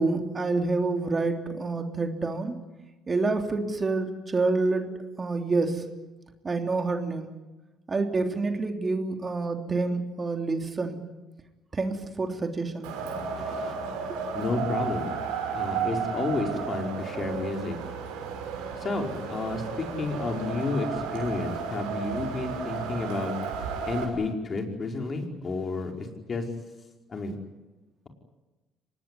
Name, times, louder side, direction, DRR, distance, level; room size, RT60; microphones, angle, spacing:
voice 1, 0.0-2.6 3.1-4.9 5.2-5.8 6.4-7.3 7.9-11.0 11.7-12.9, right 3 dB, 30° right, 4 dB, 3.2 m, -27 dB
Wind, 12.8-24.0, right 6 dB, 90° right, 5.9 m, -33 dB
voice 2, 13.4-13.7 14.3-15.1 15.5-17.8 18.8-23.3 23.9-26.5 27.1-27.3, left 3 dB, 40° left, 3 dB, 5.0 m, -31 dB
25.0 x 19.5 x 9.9 m, 1.1 s
supercardioid pair, 75°, 0 cm